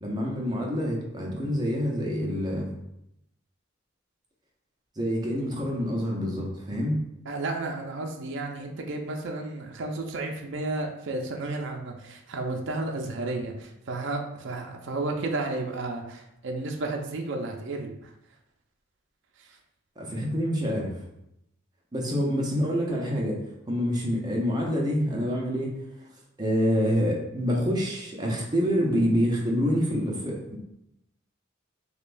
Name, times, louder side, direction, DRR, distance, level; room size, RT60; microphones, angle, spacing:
voice 1, 0.0-2.7 5.0-7.0 20.0-21.1 21.9-23.4 23.7-25.8 26.4-30.6, equal, 20° right, -2 dB, 0.7 m, -27 dB
voice 2, 7.3-18.1 19.4-19.6, right 2 dB, 65° right, 2 dB, 0.5 m, -32 dB
5.0 x 2.2 x 2.5 m, 0.81 s
head